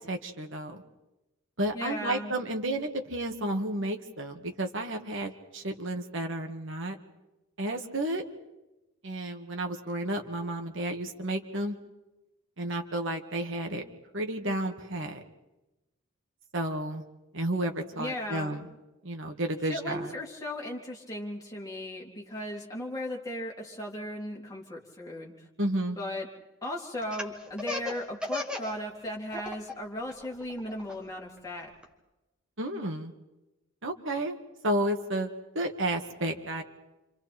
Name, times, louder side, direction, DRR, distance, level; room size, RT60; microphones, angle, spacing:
voice 1, 0.1-0.8 1.6-7.0 7.6-8.2 9.0-11.8 12.6-13.8 14.1-15.2 16.5-17.0 17.3-18.7 19.0-20.1 25.6-26.0 32.6-33.1 33.8-34.4 34.6-36.6, right 1 dB, 60° right, 4 dB, 2.0 m, -32 dB
voice 2, 1.7-2.3 18.0-18.6 19.6-25.5 26.0-26.3 26.6-31.7, left 1 dB, 15° left, -2 dB, 3.4 m, -36 dB
Laughter, 27.0-28.8 29.1-29.7 30.1-31.8, left 2 dB, 5° right, 1.8 m, -35 dB
29.5 x 25.5 x 4.5 m, 1.0 s
head